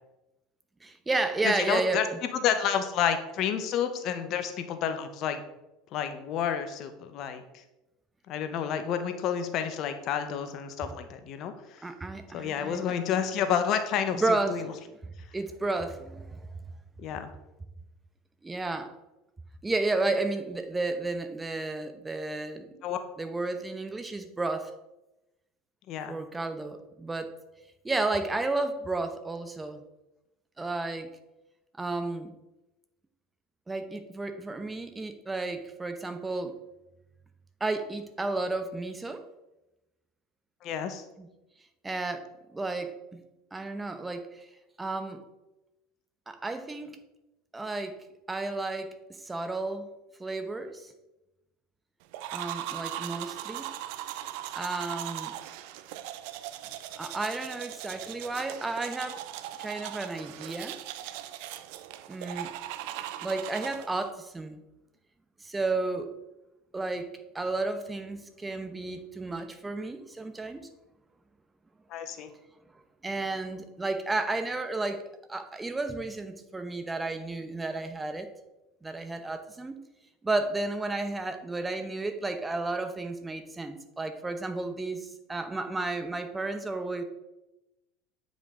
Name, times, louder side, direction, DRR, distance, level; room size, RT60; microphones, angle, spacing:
voice 1, 0.8-2.0 11.8-13.4 14.1-14.7 15.3-16.5 18.4-18.9 19.6-22.7 23.2-24.7 26.1-27.3 27.8-29.8 30.6-31.1 31.8-32.3 33.7-36.6 37.6-39.2 41.2-41.3 41.8-42.3 42.5-43.2 43.5-44.5 44.8-45.2 46.3-47.0 47.5-48.0 48.3-48.9 49.2-49.9 50.2-50.9 52.3-53.7 54.5-55.3 56.9-59.2 59.6-60.8 62.1-62.5 63.2-64.6 65.4-66.1 66.7-67.1 67.3-70.7 73.0-75.0 75.3-78.3 78.8-79.8 80.2-87.0, right 2 dB, 15° right, 8 dB, 0.9 m, -32 dB
voice 2, 1.4-2.0 2.3-5.4 5.9-7.6 8.3-11.9 12.3-14.6 17.0-17.3 22.8-23.0 25.9-26.1 40.6-41.0 71.9-72.3, left 8 dB, 55° left, 9 dB, 0.9 m, -30 dB
sound 1, 52.1-64.1, right 13 dB, 70° right, 0.5 m, -39 dB
8.8 x 5.3 x 3.7 m, 0.96 s
hypercardioid pair, 90°, 0 cm